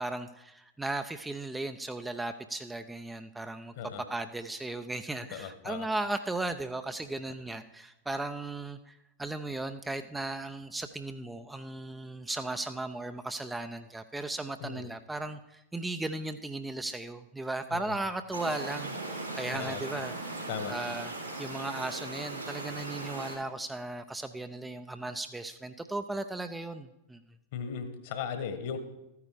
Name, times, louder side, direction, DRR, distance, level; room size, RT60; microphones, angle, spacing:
voice 1, 0.0-3.7 4.1-21.1 21.4-27.2, right 2 dB, 10° right, 8 dB, 0.6 m, -36 dB
voice 2, 5.3-5.9 14.6-14.9 17.7-17.9 19.5-19.8 20.5-20.7 27.5-28.8, left 7 dB, 50° left, 8 dB, 1.6 m, -37 dB
sound 1, 18.3-23.4, right 2 dB, 90° right, 3.2 m, -38 dB
14.0 x 9.6 x 4.9 m, 0.92 s
figure-of-eight pair, 90°, 0 cm